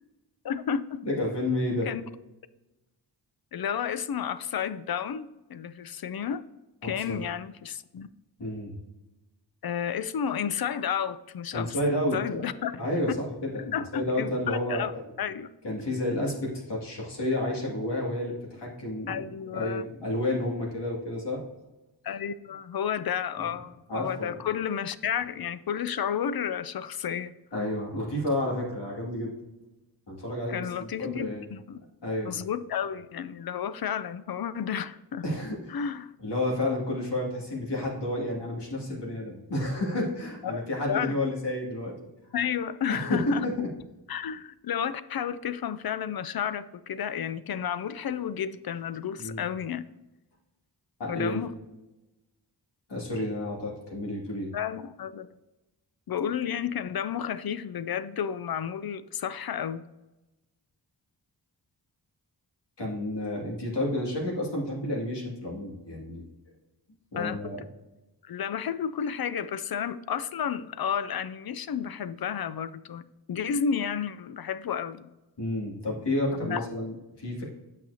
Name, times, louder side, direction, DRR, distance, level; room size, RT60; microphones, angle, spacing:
voice 1, 0.4-1.0 1.8-2.0 3.5-6.4 6.8-8.1 9.6-11.8 12.1-12.8 13.6-14.9 15.2-15.5 19.1-19.9 22.0-27.3 30.5-31.8 32.3-35.2 35.7-36.1 40.4-41.2 42.3-43.7 44.1-49.8 51.1-51.5 54.5-55.3 56.1-59.8 67.2-67.4 68.2-73.0 73.3-75.1 76.4-76.7, left 8 dB, 60° left, 14 dB, 0.5 m, -31 dB
voice 2, 1.0-1.9 7.0-7.2 8.4-8.7 11.5-14.9 15.6-19.3 19.5-21.4 23.4-23.5 23.9-24.4 27.5-29.3 30.1-31.4 32.0-32.3 35.2-35.8 36.2-41.9 42.9-43.7 49.2-49.4 51.0-51.4 52.9-54.5 62.8-66.2 67.1-67.6 75.4-77.4, left 1 dB, 75° left, -3 dB, 2.3 m, -30 dB
8.8 x 5.9 x 2.8 m, 1.0 s
wide cardioid pair, 65°, 41 cm